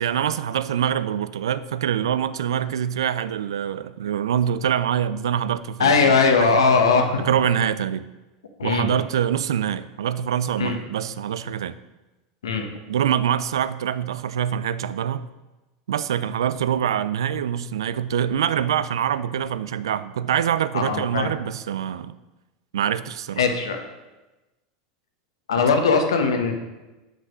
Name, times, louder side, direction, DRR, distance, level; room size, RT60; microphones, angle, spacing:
voice 1, 0.0-6.6 7.2-8.1 8.6-11.8 12.9-15.3 15.9-22.1 22.7-23.4 25.6-25.7, right 9 dB, 85° right, 15 dB, 0.3 m, -25 dB
voice 2, 5.8-7.2 8.6-8.9 10.6-10.8 12.4-12.7 20.7-21.3 23.4-23.8 25.5-26.5, left 4 dB, 85° left, 5 dB, 1.1 m, -19 dB
6.0 x 5.4 x 6.1 m, 1.1 s
hypercardioid pair, 95°, 2 cm